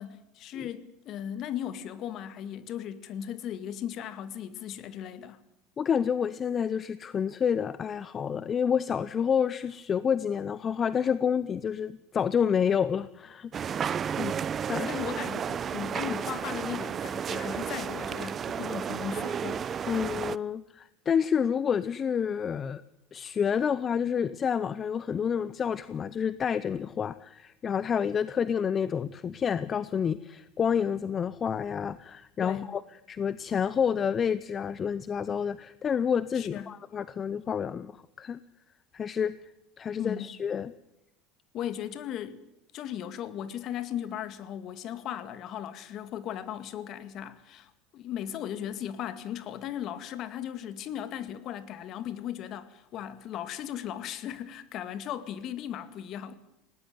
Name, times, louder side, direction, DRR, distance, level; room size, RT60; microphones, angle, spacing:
voice 1, 0.0-5.4 14.2-14.5 14.9-19.7 32.4-32.8 36.3-36.7 40.0-40.3 41.5-42.4 42.7-56.3, left 10 dB, 55° left, 2.1 m, -37 dB
voice 2, 5.8-13.8 14.7-15.0 19.9-22.8 23.1-32.8 33.1-37.9 38.2-38.4 38.9-39.4 39.8-40.7, left 7 dB, 35° left, 0.8 m, -29 dB
sound 1, 13.5-20.4, right 7 dB, 35° right, 0.7 m, -32 dB
20.0 x 18.0 x 9.4 m
hypercardioid pair, 90°, 0 cm